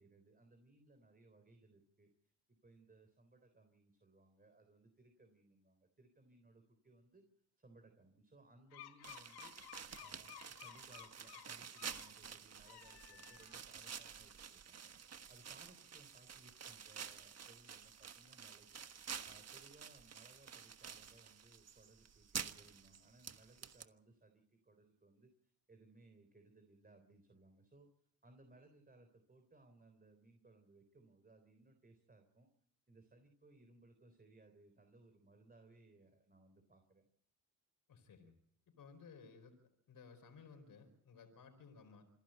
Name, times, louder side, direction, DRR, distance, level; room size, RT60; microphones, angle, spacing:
voice 1, 0.0-2.1 2.6-7.2 7.6-9.5 10.0-14.9 15.3-18.8 19.2-27.9 28.2-32.5 32.9-37.1, right 2 dB, 25° right, 6 dB, 3.6 m, -65 dB
sound 1, 8.7-12.1 12.6-13.8, left 11 dB, 80° left, 1.7 m, -56 dB
sound 2, 9.0-23.8, right 7 dB, 40° right, 1.4 m, -50 dB
voice 2, 37.9-38.3 38.8-39.6 39.9-42.0, left 5 dB, 60° left, 7 dB, 4.5 m, -58 dB
27.0 x 11.5 x 9.0 m, 0.70 s
supercardioid pair, 70°, 38 cm